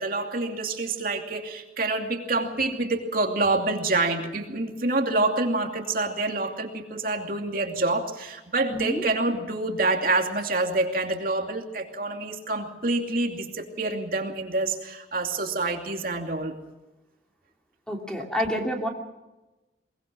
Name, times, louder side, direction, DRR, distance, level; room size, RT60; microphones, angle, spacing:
voice 1, 0.0-16.5, right 2 dB, 50° right, 3 dB, 2.7 m, -27 dB
voice 2, 8.7-9.0 17.9-18.9, equal, 5° left, 1 dB, 2.8 m, -28 dB
22.0 x 21.5 x 6.2 m, 1.1 s
head